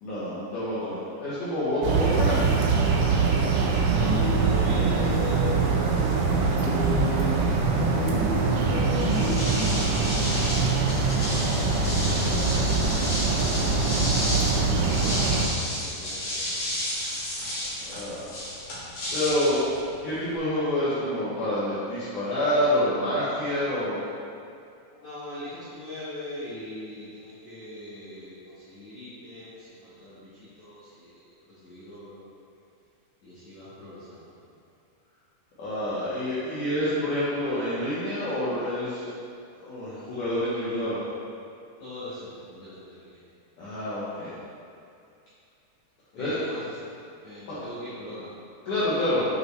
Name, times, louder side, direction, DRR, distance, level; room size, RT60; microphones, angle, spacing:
voice 1, 0.0-2.6 17.8-18.4 19.1-19.6 19.9-24.0 35.6-39.0 39.6-41.0 43.6-44.3 46.2-46.4 47.5-47.6 48.7-49.3, left 1 dB, 90° left, -11 dB, 1.7 m, -27 dB
sound 1, 1.8-15.5, right 4 dB, 90° right, 3.4 m, -24 dB
voice 2, 3.7-7.8 8.3-9.9 10.2-11.0 11.9-13.6 14.2-14.8 15.5-16.6 24.9-31.1 31.6-32.2 33.2-34.2 41.8-43.1 46.1-46.7 47.2-48.3, left 1 dB, 70° left, -12 dB, 1.7 m, -42 dB
sound 2, 3.9-5.6 6.0-10.0, equal, 50° right, 2.3 m, -31 dB
sound 3, 8.9-20.4, left 1 dB, 55° left, 1.9 m, -32 dB
8.9 x 5.3 x 3.2 m, 2.5 s
omnidirectional pair, 5.5 m